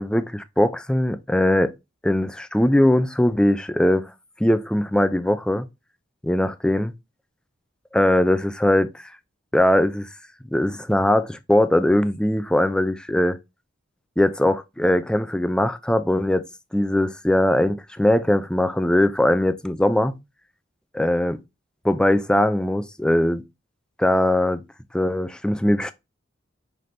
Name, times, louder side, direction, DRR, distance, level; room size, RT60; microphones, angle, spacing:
voice 1, 0.0-1.7 2.0-4.1 4.4-5.7 6.2-6.9 7.9-9.1 9.5-10.1 10.5-13.4 14.2-16.5 16.7-20.2 20.9-21.4 21.8-23.4 24.0-24.6 24.9-25.9, left 1 dB, 5° left, 0.3 m, -20 dB
5.7 x 3.3 x 2.6 m
head